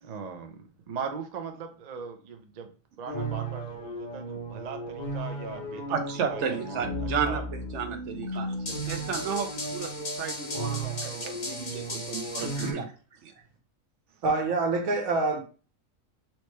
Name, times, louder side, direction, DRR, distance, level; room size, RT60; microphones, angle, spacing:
voice 1, 0.0-5.8 6.3-7.4 8.6-8.9 14.3-14.4, right 6 dB, 45° right, 0.5 m, -40 dB
sound 1, 3.1-12.7, right 1 dB, 40° left, 0.9 m, -34 dB
voice 2, 5.9-8.5 8.9-12.8 13.2-13.3, right 7 dB, 65° right, 1.0 m, -33 dB
voice 3, 12.4-12.8 14.2-15.4, right 3 dB, 90° right, 1.4 m, -27 dB
4.3 x 3.1 x 3.2 m
omnidirectional pair, 1.4 m